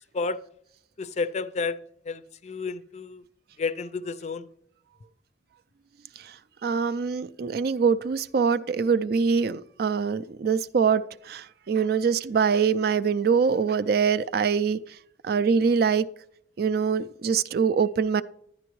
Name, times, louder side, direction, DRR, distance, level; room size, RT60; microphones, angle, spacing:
voice 1, 1.0-1.8 2.1-3.2 3.6-4.5, left 4 dB, 40° left, 0.4 m, -31 dB
voice 2, 6.6-14.8 15.2-16.1 16.6-18.2, right 6 dB, 55° right, 0.4 m, -24 dB
11.0 x 9.8 x 3.1 m
head